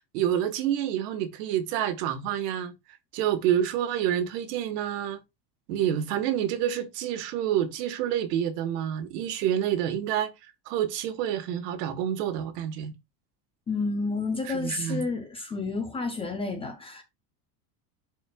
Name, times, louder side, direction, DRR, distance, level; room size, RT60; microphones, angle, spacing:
voice 1, 0.0-2.7 3.1-5.2 5.7-10.3 10.7-12.9 14.4-15.0, right 10 dB, 75° right, 1.4 m, -28 dB
voice 2, 13.7-17.0, left 3 dB, 10° left, 0.4 m, -30 dB
11.5 x 4.3 x 2.3 m
cardioid pair, 165°, 48 cm